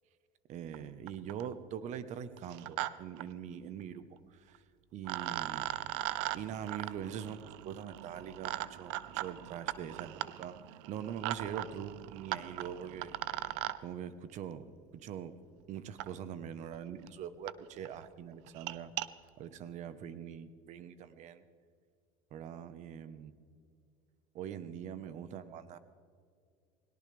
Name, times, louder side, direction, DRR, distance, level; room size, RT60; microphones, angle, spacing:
voice 1, 0.5-4.6 4.9-5.8 6.3-10.6 10.9-13.2 13.8-14.7 14.9-15.3 15.7-18.9 19.4-21.4 22.3-23.3 24.3-25.8, right 8 dB, 55° right, 12 dB, 1.2 m, -43 dB
sound 1, 0.7-0.8 1.1-1.5 2.4-2.9 3.2-3.3 4.5-4.6 5.0-13.8 15.1-15.2 16.0-16.1 16.7-16.8 17.1-17.2 17.5-17.6 17.9-18.1 18.5-19.1, right 16 dB, 80° right, 0.7 m, -39 dB
21.0 x 18.0 x 3.5 m, 2.2 s
supercardioid pair, 105°, 15 cm